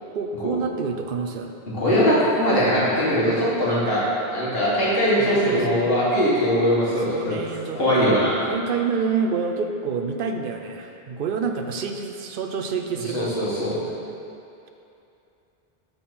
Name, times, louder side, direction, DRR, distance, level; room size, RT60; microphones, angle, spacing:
voice 1, 0.1-1.5 5.2-5.8 7.1-8.2 8.5-13.5, right 5 dB, 65° right, 5 dB, 0.7 m, -28 dB
voice 2, 1.7-4.0 4.3-7.3 7.7-8.4 13.1-13.8, equal, 70° left, -8 dB, 2.1 m, -21 dB
11.5 x 4.2 x 4.2 m, 2.7 s
omnidirectional pair, 1.0 m